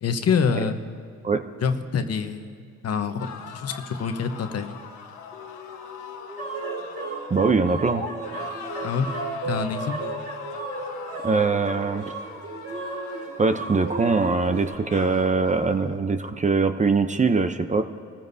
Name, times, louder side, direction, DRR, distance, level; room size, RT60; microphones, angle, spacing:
voice 1, 0.0-0.8 1.6-2.6 2.8-3.3 3.5-4.8 8.8-9.1 9.4-10.0, left 6 dB, 55° left, 7 dB, 1.1 m, -26 dB
sound 1, 3.2-7.8 8.2-14.0 14.6-16.0, left 6 dB, 85° left, 1.3 m, -42 dB
sound 2, 5.3-8.1 9.2-12.2, left 1 dB, 20° left, 1.6 m, -39 dB
sound 3, 6.4-14.7, right 4 dB, 60° right, 4.6 m, -34 dB
voice 2, 7.3-8.0 11.2-12.0 13.4-17.8, right 4 dB, 25° right, 8 dB, 0.7 m, -22 dB
25.5 x 14.5 x 2.7 m, 2.2 s
cardioid pair, 90°, 30 cm